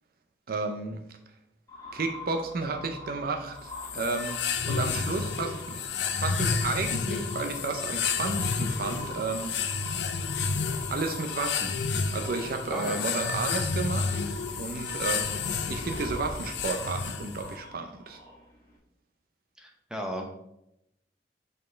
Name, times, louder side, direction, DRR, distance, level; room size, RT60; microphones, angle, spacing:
voice 1, 0.5-1.0 1.9-4.4 4.6-5.8 6.2-9.7 10.9-11.8 12.1-14.2 14.6-15.3 15.7-18.2, right 3 dB, 55° right, 5 dB, 0.6 m, -32 dB
sound 1, 1.7-18.7, left 1 dB, 20° left, 1.7 m, -43 dB
sound 2, 3.7-17.6, left 5 dB, 70° left, 0.6 m, -31 dB
voice 2, 12.7-13.1 14.7-15.0 19.6-20.3, equal, 5° right, 1 dB, 0.8 m, -36 dB
5.3 x 4.3 x 4.4 m, 0.82 s
head